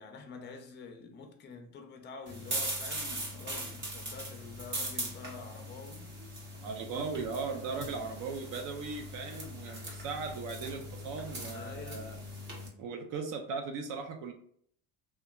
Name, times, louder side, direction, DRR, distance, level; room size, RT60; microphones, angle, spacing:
voice 1, 0.0-6.1 7.6-8.0 11.5-12.1, left 4 dB, 30° left, 0.5 m, -47 dB
sound 1, 2.3-12.7, right 1 dB, 30° right, 0.9 m, -40 dB
voice 2, 6.6-12.2 12.8-14.3, right 4 dB, 60° right, 0.5 m, -38 dB
2.9 x 2.3 x 2.3 m
cardioid pair, 125°, 36 cm